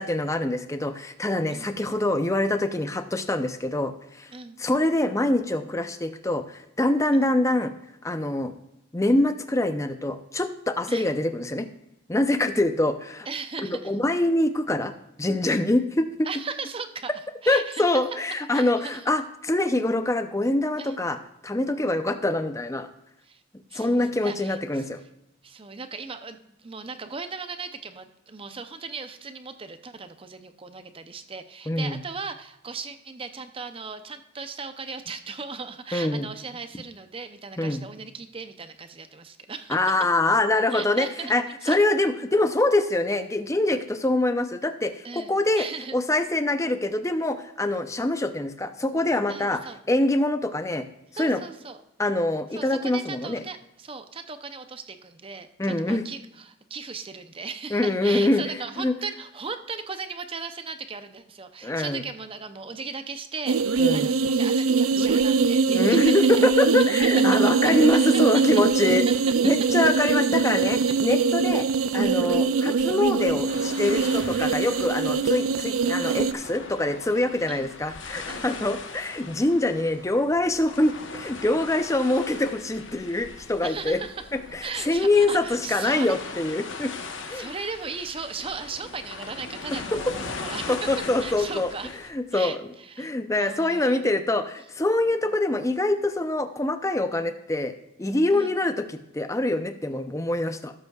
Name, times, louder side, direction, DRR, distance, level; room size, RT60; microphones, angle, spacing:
voice 1, 0.0-4.3 4.6-7.7 8.0-8.5 8.9-11.7 12.1-13.3 13.6-14.9 15.2-16.3 17.5-21.2 21.4-22.9 23.7-25.0 31.7-32.0 35.9-36.3 37.6-37.8 39.7-45.7 45.9-49.6 49.9-50.8 51.1-51.4 52.0-53.4 55.6-56.0 57.7-58.9 61.6-62.0 63.8-64.1 65.7-69.1 69.4-71.7 71.9-84.0 84.5-86.9 87.3-87.5 90.7-91.7 92.1-92.6 93.0-97.7 98.0-100.7, left 2 dB, 15° left, 9 dB, 0.6 m, -24 dB
voice 2, 13.3-13.9 16.2-17.1 17.4-18.0 18.5-19.1 20.8-21.0 23.2-23.4 23.7-24.9 25.4-39.8 40.7-41.3 41.6-41.8 45.0-46.0 49.3-49.8 51.2-51.8 52.6-66.3 68.1-68.2 69.1-69.2 75.5-75.9 77.5-77.7 78.3-78.7 83.6-84.2 84.6-86.2 87.3-90.9 91.2-91.9 92.3-93.1 93.4-94.0 95.2-95.4 98.3-98.6, right 5 dB, 25° right, 9 dB, 0.6 m, -37 dB
sound 1, 63.5-76.3, right 5 dB, 90° right, 0.4 m, -22 dB
sound 2, 73.5-92.1, left 4 dB, 65° left, 1.0 m, -40 dB
16.5 x 8.0 x 2.4 m, 0.85 s
head